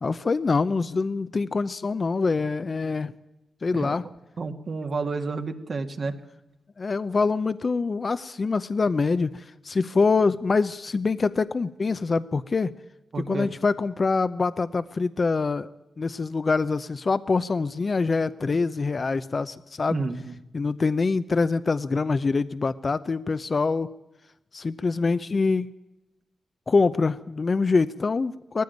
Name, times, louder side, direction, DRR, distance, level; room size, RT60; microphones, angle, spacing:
voice 1, 0.0-3.1 3.6-4.0 6.8-12.7 13.3-15.7 16.0-20.0 20.5-23.9 24.5-25.7 26.7-28.6, left 4 dB, 45° left, 13 dB, 0.7 m, -25 dB
voice 2, 4.4-6.1 13.1-13.5 19.9-20.4, right 3 dB, 55° right, 6 dB, 1.8 m, -30 dB
19.5 x 15.0 x 9.3 m, 0.97 s
cardioid pair, 70°, 0 cm